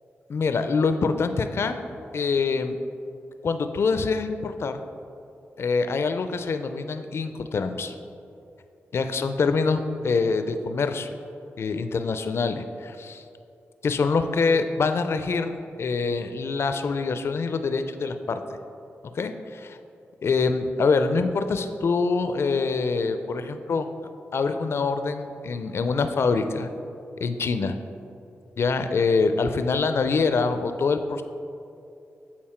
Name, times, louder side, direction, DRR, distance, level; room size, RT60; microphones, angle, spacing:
voice 1, 0.3-1.8 2.1-2.8 3.4-4.8 5.6-7.9 8.9-11.1 11.6-13.2 13.8-18.4 19.1-19.8 20.2-23.9 24.3-26.7 27.2-27.8 28.6-31.2, left 4 dB, 60° left, 8 dB, 0.4 m, -25 dB
7.5 x 4.2 x 4.3 m, 2.6 s
cardioid pair, 50°, 5 cm